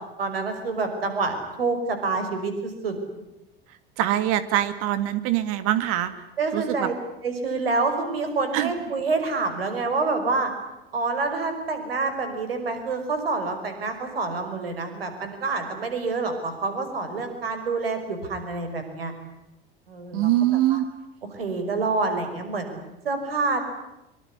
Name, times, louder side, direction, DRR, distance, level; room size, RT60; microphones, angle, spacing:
voice 1, 0.2-2.9 6.4-6.9 7.2-10.5 10.9-19.1 19.9-20.3 20.7-20.8 21.3-23.6, right 3 dB, 75° right, 7 dB, 5.6 m, -27 dB
voice 2, 4.0-6.1 6.5-6.9 8.5-8.7 20.1-20.9, right 13 dB, 50° right, 12 dB, 2.3 m, -23 dB
24.5 x 24.0 x 9.8 m, 0.92 s
figure-of-eight pair, 75°, 30 cm